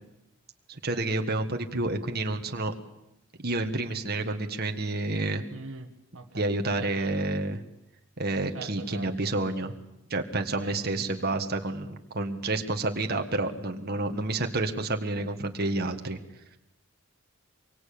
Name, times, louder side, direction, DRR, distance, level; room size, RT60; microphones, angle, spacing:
voice 1, 0.7-2.7 3.4-5.4 6.3-7.6 8.2-9.7 10.1-16.2, right 2 dB, 45° right, 4 dB, 1.7 m, -29 dB
voice 2, 5.5-7.2 8.5-9.3 10.6-11.2, right 3 dB, 60° right, 7 dB, 1.6 m, -43 dB
25.0 x 23.5 x 8.7 m, 0.87 s
head